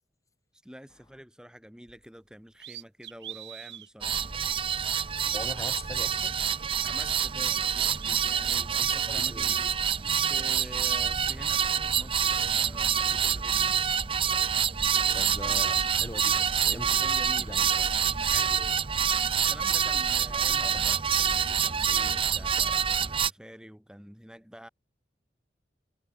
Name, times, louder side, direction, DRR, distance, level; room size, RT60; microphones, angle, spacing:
voice 1, 0.6-4.3 6.8-9.8 10.2-13.7 16.7-18.8 19.5-24.7, equal, 5° right, 3.1 m, -48 dB
sound 1, 1.9-2.1 2.5-3.9 4.5-4.6 6.4-7.1 7.4-8.5 9.4-10.5 11.7-11.8 12.2-13.9 14.2-15.0 15.3-16.2, right 11 dB, 80° right, 7.5 m, -47 dB
sound 2, 4.0-23.3, right 8 dB, 30° right, 0.7 m, -27 dB
voice 2, 5.3-6.7 8.7-9.6 14.9-16.9 17.4-17.7 20.6-21.0, left 1 dB, 20° left, 4.4 m, -42 dB
head